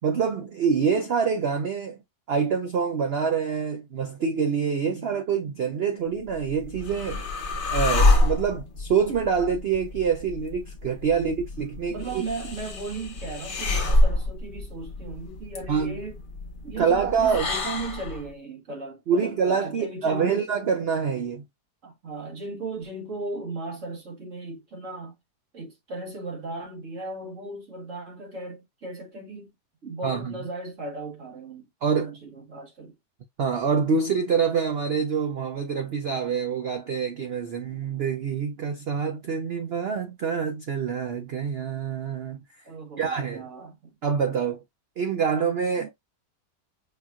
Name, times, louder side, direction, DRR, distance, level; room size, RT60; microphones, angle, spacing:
voice 1, 0.0-2.0 2.3-7.3 7.7-12.2 15.7-16.0 16.8-17.5 19.1-21.4 30.0-30.3 31.8-32.2 33.4-42.6 43.0-43.5 44.0-44.6 45.0-45.9, right 6 dB, 80° right, 0.5 m, -26 dB
sound 1, 6.2-18.3, left 2 dB, 40° left, 0.8 m, -27 dB
voice 2, 11.9-16.2 16.6-20.4 21.8-25.1 25.5-29.5 29.8-31.6 32.0-33.0 42.6-44.0 45.8-45.9, right 2 dB, 50° right, 1.7 m, -37 dB
4.9 x 2.9 x 2.4 m
omnidirectional pair, 1.8 m